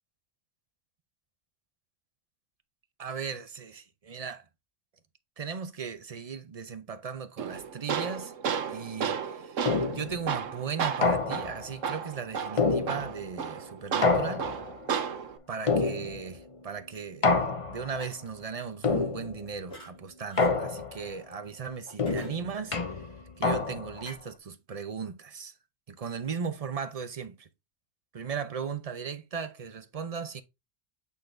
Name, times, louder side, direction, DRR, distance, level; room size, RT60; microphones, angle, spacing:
voice 1, 3.0-4.4 5.4-8.3 8.7-9.6 9.9-14.5 15.5-17.4 17.7-23.0 23.4-25.5 25.9-27.5 28.1-30.4, right 6 dB, 35° right, 0.7 m, -37 dB
Tools, 7.4-15.4, right 7 dB, 75° right, 1.2 m, -33 dB
sound 1, 9.7-10.2 11.0-11.7 12.6-13.3 14.0-14.8 15.7-16.4 17.2-18.0 18.8-19.5 20.4-21.1 22.0-24.0, left 3 dB, 30° left, 0.7 m, -27 dB
sound 2, 17.9-18.3 19.7-19.9 20.3-20.5 21.9-22.8 23.9-24.2, equal, 80° left, 4.3 m, -47 dB
8.4 x 3.9 x 3.3 m
omnidirectional pair, 1.3 m